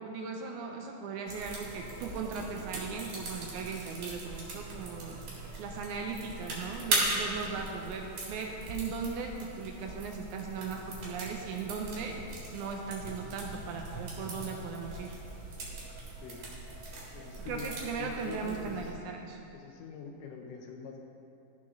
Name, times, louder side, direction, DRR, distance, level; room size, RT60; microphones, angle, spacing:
voice 1, 0.0-12.2 12.5-15.2 17.5-19.4, right 5 dB, 80° right, 2 dB, 1.8 m, -38 dB
sound 1, 1.3-18.9, right 2 dB, 55° right, 2.9 m, -39 dB
voice 2, 17.1-17.7 18.0-19.0 19.5-21.0, left 6 dB, 75° left, 2 dB, 2.2 m, -44 dB
13.5 x 6.3 x 3.6 m, 2.6 s
omnidirectional pair, 4.0 m